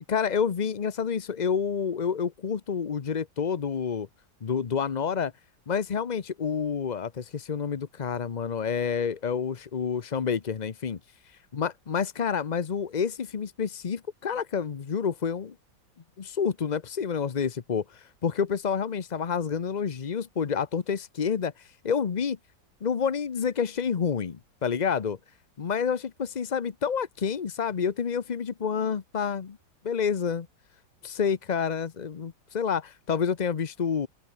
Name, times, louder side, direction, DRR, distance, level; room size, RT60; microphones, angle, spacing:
voice 1, 0.1-4.1 4.4-5.3 5.7-11.0 11.5-15.5 16.2-22.4 22.8-25.2 25.6-29.6 29.8-30.5 31.0-34.1, left 6 dB, 60° left, 0.4 m, -28 dB
open air
omnidirectional pair, 2.0 m